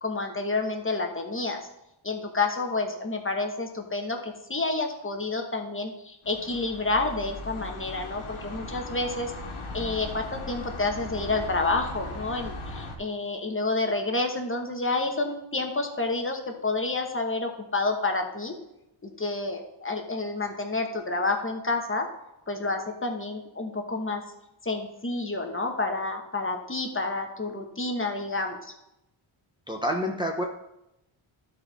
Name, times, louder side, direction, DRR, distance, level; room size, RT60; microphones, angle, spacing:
voice 1, 0.0-1.6 2.0-9.3 9.7-18.5 19.0-22.1 22.5-24.2 24.6-28.7, left 3 dB, 25° left, 3 dB, 1.1 m, -29 dB
sound 1, 6.2-13.0, left 2 dB, 80° left, 1.4 m, -38 dB
voice 2, 29.7-30.4, equal, 10° right, 1 dB, 0.7 m, -28 dB
12.5 x 4.5 x 4.0 m, 0.87 s
cardioid pair, 90°, 49 cm